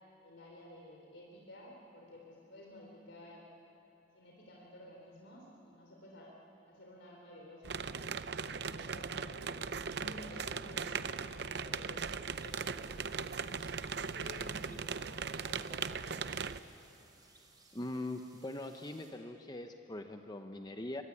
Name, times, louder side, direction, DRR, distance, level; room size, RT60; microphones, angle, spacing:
voice 1, 0.2-3.5 4.1-6.3 6.6-7.9 8.4-12.1 12.4-13.6 14.0-16.3, left 1 dB, 70° left, -2 dB, 3.8 m, -53 dB
sound 1, 7.6-16.6, right 6 dB, 55° right, 0.7 m, -39 dB
sound 2, 12.3-19.1, right 3 dB, 20° right, 3.9 m, -63 dB
voice 2, 17.7-21.0, left 1 dB, 20° left, 6 dB, 0.9 m, -42 dB
25.0 x 23.5 x 9.9 m, 2.9 s
head